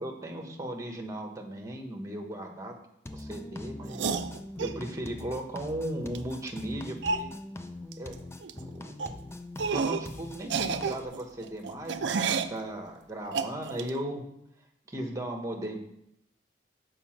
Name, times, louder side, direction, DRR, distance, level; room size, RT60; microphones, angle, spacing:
voice 1, 0.0-2.7 3.1-4.0 4.6-7.3 8.0-8.1 8.5-8.9 9.6-14.2 14.9-15.8, right 1 dB, 20° right, 2 dB, 1.2 m, -36 dB
sound 1, 3.0-11.1, left 2 dB, 15° left, 0.5 m, -43 dB
sound 2, 3.9-4.8 6.1-6.2 6.5-6.6 7.0-7.3 7.9-8.1 8.4-8.6 9.0-9.1 9.6-10.1 10.4-12.6 13.3-13.9, right 5 dB, 75° right, 0.5 m, -30 dB
7.1 x 5.2 x 5.8 m, 0.76 s
head